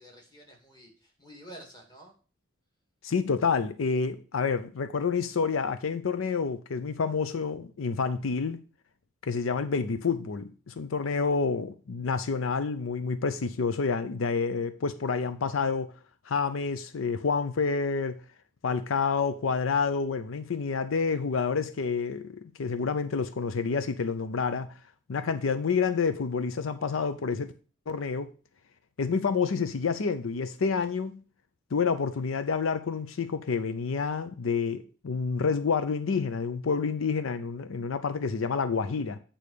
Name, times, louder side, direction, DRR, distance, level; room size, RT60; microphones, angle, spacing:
voice 1, 0.0-2.1, right 1 dB, 20° left, 2.4 m, -49 dB
voice 2, 3.0-8.6 9.2-15.9 16.3-18.2 18.6-24.7 25.1-27.5 27.9-28.3 29.0-31.2 31.7-39.2, left 5 dB, 90° left, 0.6 m, -28 dB
8.5 x 3.9 x 6.6 m
head